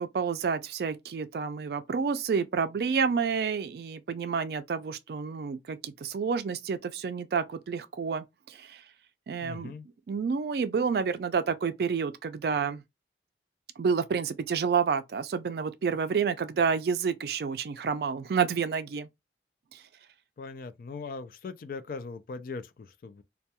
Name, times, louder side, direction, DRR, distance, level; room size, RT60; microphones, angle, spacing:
voice 1, 0.0-8.8 9.3-9.7 10.1-12.8 13.8-19.1 19.7-19.8, right 6 dB, 60° right, 0.3 m, -29 dB
voice 2, 9.4-9.9 20.4-23.2, left 4 dB, 50° left, 0.3 m, -40 dB
2.2 x 2.2 x 2.8 m
head